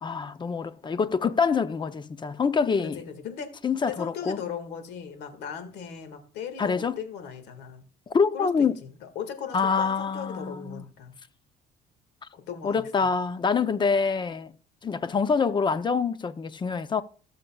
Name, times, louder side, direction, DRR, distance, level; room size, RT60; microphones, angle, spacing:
voice 1, 0.0-3.0 3.6-4.4 6.6-7.0 8.1-8.8 9.5-10.8 12.6-14.5 14.8-17.0, left 5 dB, 30° left, 0.6 m, -25 dB
voice 2, 2.8-3.5 3.8-7.8 8.3-11.1 12.3-13.1, left 7 dB, 85° left, 1.8 m, -38 dB
17.5 x 6.7 x 2.3 m
cardioid pair, 110°, 17 cm